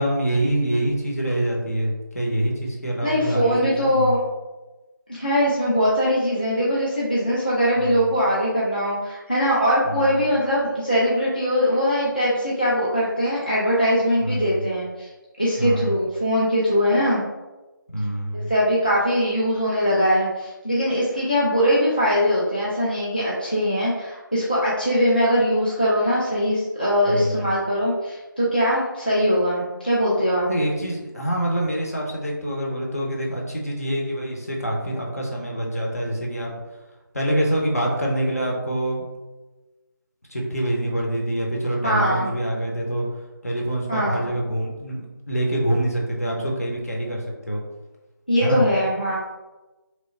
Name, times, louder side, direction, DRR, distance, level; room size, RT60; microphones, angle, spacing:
voice 1, 0.0-4.1 7.8-8.0 9.9-10.2 14.2-14.6 15.6-15.9 17.9-18.5 27.1-27.5 30.5-36.5 37.1-39.0 40.3-43.1 43.4-47.6 48.4-48.6, right 1 dB, 45° left, -1 dB, 0.8 m, -25 dB
voice 2, 3.0-4.2 5.1-15.1 15.4-17.2 18.3-30.5 41.8-42.3 43.9-44.2 48.3-49.2, equal, 25° left, -8 dB, 0.4 m, -21 dB
3.0 x 2.1 x 4.1 m, 1.1 s
figure-of-eight pair, 180°, 11 cm